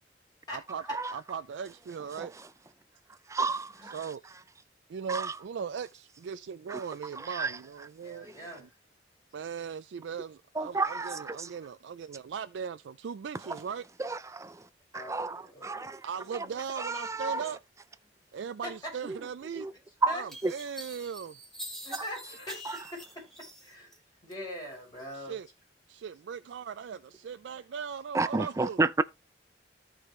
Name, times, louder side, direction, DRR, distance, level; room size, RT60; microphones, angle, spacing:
voice 1, 0.5-0.8 1.1-2.3 3.8-4.2 4.9-8.7 9.3-13.8 16.0-17.6 18.3-19.7 20.1-21.4 25.1-25.5 25.9-28.8, right 6 dB, 80° right, 0.4 m, -39 dB
voice 2, 3.3-3.9 5.1-5.3 6.7-6.8 7.4-7.5 10.6-11.4 14.0-14.6 14.9-16.0 16.8-17.4 19.1-19.2 19.6-19.7 20.0-20.1 20.4-20.5 28.1-29.0, right 3 dB, 15° right, 0.4 m, -30 dB
voice 3, 8.0-8.7 14.9-15.8 18.6-18.7 20.1-20.2 21.8-23.2 23.6-23.9 24.2-25.4, left 1 dB, 25° left, 6.5 m, -42 dB
sound 1, 19.6-19.7 20.3-24.0 24.3-25.1, equal, 5° left, 1.6 m, -45 dB
14.0 x 4.8 x 3.1 m
head